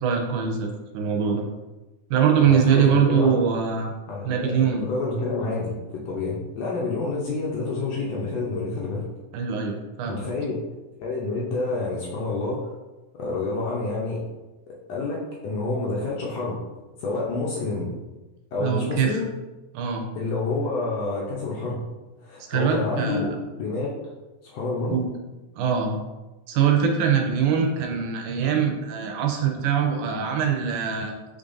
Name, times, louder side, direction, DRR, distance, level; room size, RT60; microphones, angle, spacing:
voice 1, 0.0-1.5 2.1-3.9 4.2-4.9 9.3-10.2 18.6-19.2 19.7-20.1 22.5-23.4 24.9-25.1 25.6-26.0 26.5-31.2, right 7 dB, 85° right, 2 dB, 2.1 m, -23 dB
voice 2, 2.4-3.4 4.1-9.1 10.1-10.6 11.0-12.7 13.2-14.2 14.7-16.6 17.0-17.9 18.5-19.3 20.1-21.8 22.2-23.9 24.4-25.0, left 3 dB, 70° left, -4 dB, 1.6 m, -28 dB
5.2 x 3.8 x 2.5 m, 1.1 s
omnidirectional pair, 3.5 m